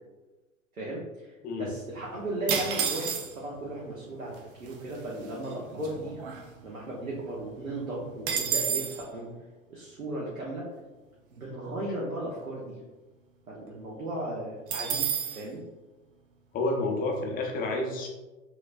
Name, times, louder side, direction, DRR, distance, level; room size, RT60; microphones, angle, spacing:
voice 1, 0.7-1.3 1.6-6.2 6.6-9.3 9.7-10.7 11.3-12.7 13.5-15.1 15.3-15.6, right 1 dB, 80° right, -4 dB, 1.0 m, -36 dB
sound 1, 2.5-3.6 4.4-4.5 4.7-5.0 5.4-6.9 7.2-7.3 7.6-9.0 14.7-15.4, right 7 dB, 40° right, 0.6 m, -30 dB
voice 2, 16.5-18.1, left 2 dB, 20° left, 1 dB, 0.7 m, -29 dB
5.9 x 3.0 x 2.5 m, 1.2 s
figure-of-eight pair, 95°, 42 cm